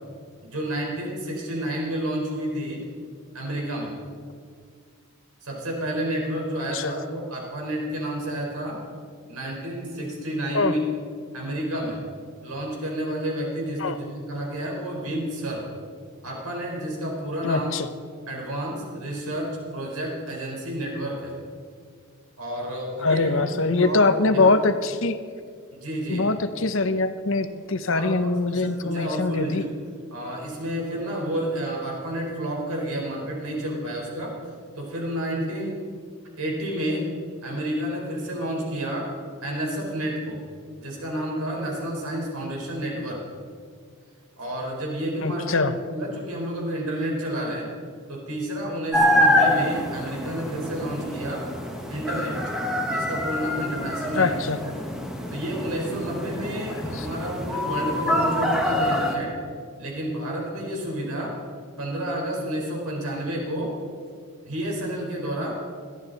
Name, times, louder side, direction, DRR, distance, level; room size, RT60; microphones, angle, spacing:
voice 1, 0.4-2.8 3.3-3.9 5.4-8.8 9.3-10.8 11.3-12.0 12.4-15.7 16.2-17.7 18.3-21.3 22.4-24.5 25.7-26.3 27.9-29.7 30.1-34.4 34.8-35.8 36.4-37.1 37.4-39.1 39.4-40.4 40.8-43.2 44.4-47.7 48.1-51.5 51.9-52.4 52.9-54.4 54.6-54.7 55.3-59.3 59.8-61.4 61.8-63.8 64.5-65.6, right 1 dB, 90° right, -1 dB, 4.3 m, -30 dB
voice 2, 17.4-17.9 23.0-25.2 26.1-29.6 45.2-45.8 54.1-54.6 56.7-57.1, left 3 dB, 60° left, 11 dB, 0.8 m, -23 dB
sound 1, 48.9-59.2, left 1 dB, 5° right, 1.5 m, -26 dB
21.5 x 13.5 x 4.1 m, 2.1 s
head